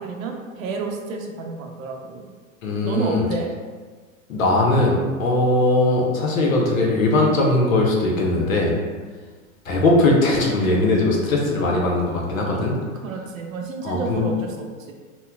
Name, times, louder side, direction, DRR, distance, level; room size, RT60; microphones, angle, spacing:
voice 1, 0.0-2.2 2.8-3.5 13.0-14.9, right 4 dB, 80° right, 2 dB, 0.7 m, -30 dB
voice 2, 2.6-3.3 4.3-8.7 9.6-12.7 13.8-14.2, left 2 dB, 85° left, -1 dB, 0.9 m, -20 dB
4.2 x 2.2 x 2.2 m, 1.5 s
hypercardioid pair, 110°, 40 cm